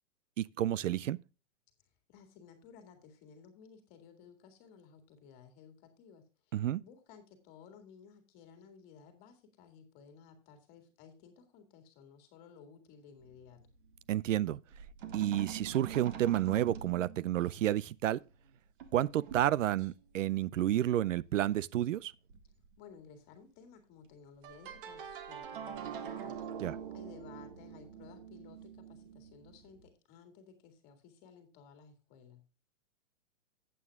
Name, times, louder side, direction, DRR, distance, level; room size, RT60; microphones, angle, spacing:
voice 1, 0.4-1.2 6.5-6.8 14.1-14.6 15.1-18.2 18.9-22.1 26.6-26.8, right 12 dB, 75° right, 0.6 m, -30 dB
voice 2, 2.1-13.6 22.8-26.5 26.9-32.4, left 6 dB, 25° left, 2.2 m, -56 dB
sound 1, 13.2-14.5 14.7-17.7 18.3-18.5 18.8-20.0 21.4-21.5 22.0-22.1 22.3-22.7 24.4-29.9, right 8 dB, 45° right, 1.6 m, -45 dB
14.5 x 8.6 x 2.3 m
hypercardioid pair, 165°, 39 cm